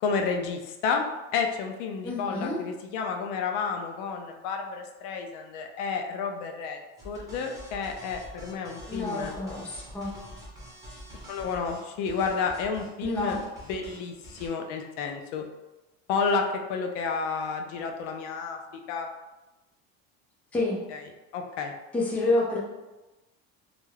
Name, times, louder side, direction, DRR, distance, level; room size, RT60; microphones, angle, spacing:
voice 1, 0.0-1.1 1.3-6.8 7.0-9.3 11.3-13.4 13.7-15.4 16.1-18.6 18.9-19.1 20.9-21.0 21.3-21.7, left 5 dB, 75° left, 3 dB, 0.5 m, -30 dB
voice 2, 2.0-2.6 8.9-10.1 13.0-13.4 20.5-20.8 21.9-22.6, left 2 dB, 5° left, -4 dB, 0.3 m, -28 dB
sound 1, 7.0-14.5, right 1 dB, 10° right, 0.7 m, -46 dB
2.3 x 2.2 x 3.1 m, 1.1 s
cardioid pair, 150°, 31 cm